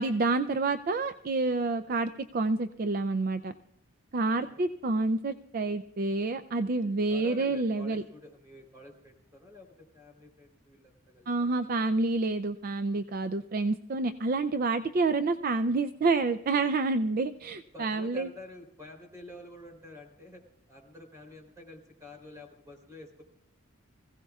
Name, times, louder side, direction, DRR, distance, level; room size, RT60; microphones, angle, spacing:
voice 1, 0.0-3.5 4.1-8.0 11.3-18.3, right 3 dB, 45° right, 10 dB, 0.4 m, -28 dB
voice 2, 4.3-4.6 7.1-11.6 17.7-23.2, left 2 dB, 15° right, 2 dB, 3.4 m, -49 dB
25.0 x 16.0 x 2.4 m, 0.84 s
head